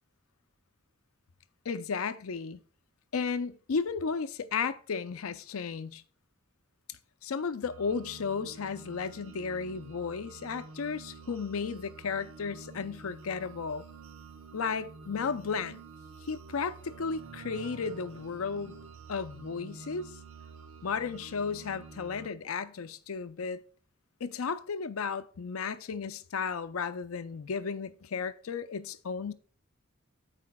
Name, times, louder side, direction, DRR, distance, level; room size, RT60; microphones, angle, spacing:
voice 1, 1.6-2.6 3.1-6.0 7.2-13.8 14.5-15.8 16.2-18.8 19.1-20.1 20.8-23.6 24.2-29.3, left 5 dB, 75° left, 0.5 m, -34 dB
sound 1, 7.6-22.3, right 4 dB, 85° right, 0.8 m, -49 dB
14.5 x 4.9 x 2.2 m
head